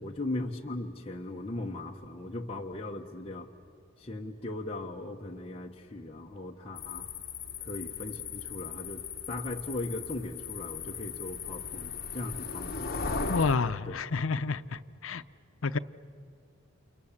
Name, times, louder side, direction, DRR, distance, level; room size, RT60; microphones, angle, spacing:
voice 1, 0.0-3.5 4.0-7.1 7.6-12.9 13.9-14.0, left 2 dB, 30° left, -1 dB, 1.1 m, -38 dB
sound 1, 6.8-13.6, left 5 dB, 45° left, 1.4 m, -37 dB
voice 2, 13.3-15.2 15.6-15.8, left 4 dB, 80° left, 12 dB, 0.7 m, -29 dB
29.5 x 28.0 x 7.3 m, 2.4 s
head